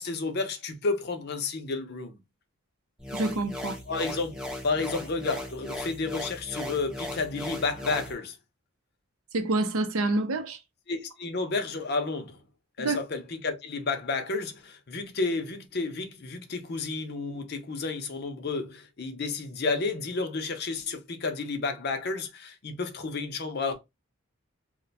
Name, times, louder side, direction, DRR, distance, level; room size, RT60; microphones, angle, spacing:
voice 1, 0.0-2.1 3.9-8.4 10.9-12.4 12.8-23.8, left 3 dB, 45° left, 0.5 m, -31 dB
sound 1, 3.0-8.1, left 1 dB, 5° right, 0.5 m, -37 dB
voice 2, 3.1-3.8 9.3-10.6 12.8-13.0, right 2 dB, 70° right, 0.5 m, -27 dB
2.5 x 2.2 x 3.9 m
head